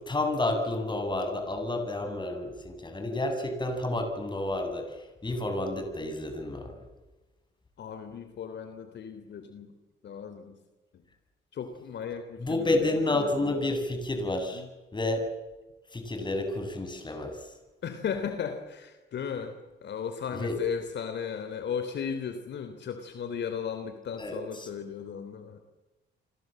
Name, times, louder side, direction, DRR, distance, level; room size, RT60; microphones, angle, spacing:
voice 1, 0.0-6.8 12.4-14.6 14.9-15.3 15.9-17.5 20.3-20.6 24.2-24.7, left 2 dB, 25° left, 5 dB, 7.7 m, -30 dB
voice 2, 7.8-9.7 10.0-10.6 10.9-11.0 11.5-12.9 14.5-14.7 17.8-25.6, left 7 dB, 65° left, 8 dB, 3.5 m, -36 dB
29.5 x 24.5 x 7.9 m, 1.2 s
cardioid pair, 90°, 20 cm